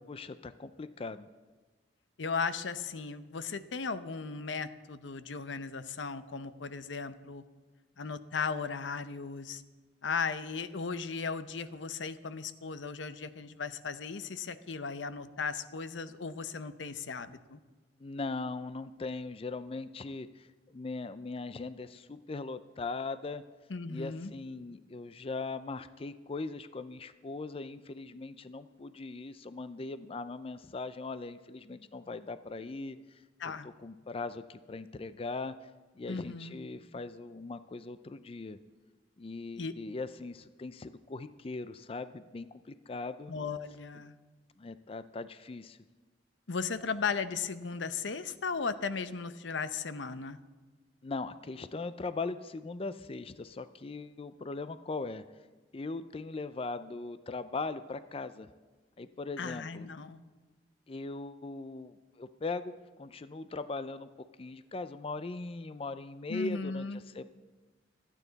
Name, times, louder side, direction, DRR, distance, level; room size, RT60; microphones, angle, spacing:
voice 1, 0.1-1.3 18.0-23.4 23.9-35.7 35.9-38.6 39.2-43.3 43.9-44.0 44.6-45.8 51.0-55.2 55.7-58.5 59.0-59.9 60.9-64.1 64.4-66.9 67.1-67.2, left 3 dB, 30° left, 13 dB, 0.4 m, -40 dB
voice 2, 2.2-7.4 8.0-9.6 10.0-17.6 23.7-24.3 33.4-33.7 36.1-36.6 39.6-39.7 43.3-44.1 46.5-50.4 59.4-60.2 66.3-67.0, left 5 dB, 90° left, 12 dB, 0.7 m, -36 dB
26.0 x 9.2 x 4.0 m, 1.3 s
head